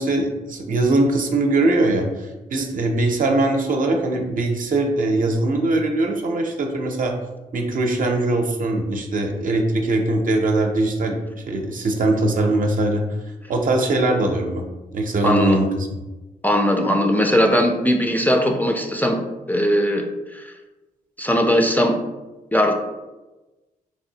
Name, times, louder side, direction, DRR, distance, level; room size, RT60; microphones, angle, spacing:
voice 1, 0.0-7.2 7.5-11.2 11.5-13.0 13.5-14.6 14.9-15.9, right 2 dB, 55° right, 2 dB, 0.6 m, -21 dB
voice 2, 15.2-15.6 16.4-19.2 19.5-20.1 20.3-20.5 21.2-22.0 22.5-22.7, equal, 10° left, 3 dB, 0.4 m, -19 dB
3.3 x 2.6 x 2.8 m, 1.1 s
supercardioid pair, 55°, 16 cm